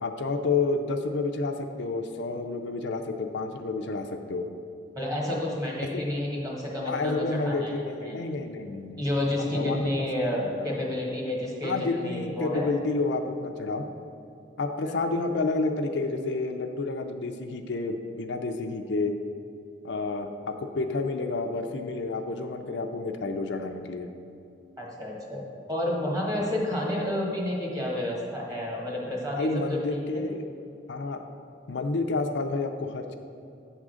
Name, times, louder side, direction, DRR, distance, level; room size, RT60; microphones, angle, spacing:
voice 1, 0.0-4.4 5.9-6.0 6.8-9.0 9.4-10.0 10.3-10.8 11.6-13.9 14.6-19.1 19.8-24.1 26.4-26.5 29.4-30.4 30.9-31.2 31.7-33.2, left 3 dB, 70° left, 5 dB, 0.5 m, -30 dB
voice 2, 4.9-7.7 8.0-8.2 9.0-12.7 14.8-14.9 24.8-25.4 25.7-30.2, left 1 dB, 20° right, -3 dB, 1.5 m, -30 dB
8.6 x 3.6 x 6.3 m, 2.6 s
head